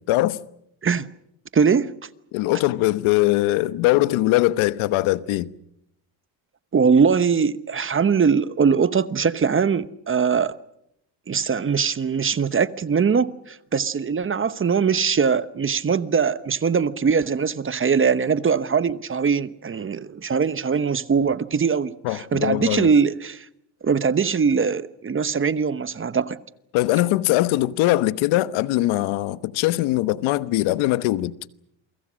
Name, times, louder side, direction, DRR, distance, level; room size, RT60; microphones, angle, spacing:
voice 1, 0.1-0.4 2.3-5.5 22.0-22.9 26.7-31.3, left 17 dB, 80° left, 1.2 m, -21 dB
voice 2, 1.5-1.9 6.7-10.6 11.3-23.4 23.8-26.4, right 6 dB, 25° right, 1.1 m, -21 dB
28.5 x 24.0 x 6.3 m
cardioid pair, 100°, 47 cm